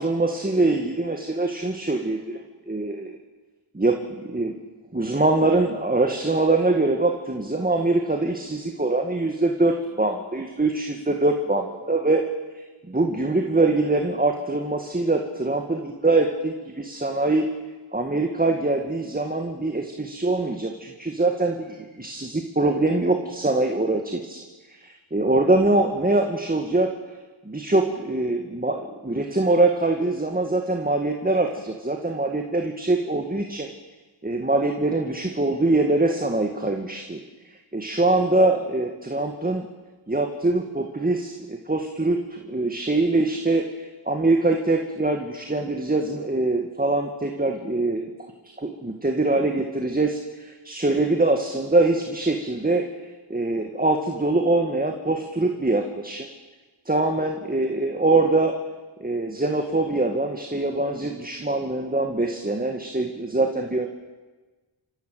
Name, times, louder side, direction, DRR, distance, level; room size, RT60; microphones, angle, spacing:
voice 1, 0.0-2.4 2.7-3.1 3.7-4.5 4.9-12.2 12.5-17.5 17.9-24.4 24.7-26.9 27.5-33.7 34.2-37.2 37.7-39.7 40.1-48.1 48.6-52.9 53.3-56.3 56.9-58.6 59.0-63.9, right 2 dB, 15° right, 4 dB, 2.0 m, -23 dB
29.0 x 15.0 x 9.3 m, 1.3 s
wide cardioid pair, 85°, 50 cm